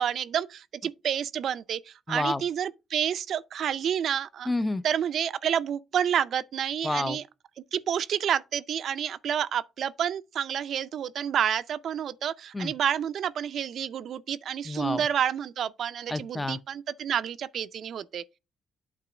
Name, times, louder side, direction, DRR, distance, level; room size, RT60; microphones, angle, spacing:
voice 1, 0.0-4.5 4.8-7.2 7.7-18.2, right 9 dB, 65° right, 0.4 m, -29 dB
voice 2, 2.1-2.4 4.5-4.8 6.8-7.2 12.5-12.7 14.6-15.1 16.1-16.6, left 2 dB, 15° left, 0.5 m, -29 dB
8.6 x 3.0 x 6.0 m
cardioid pair, 90°, 0 cm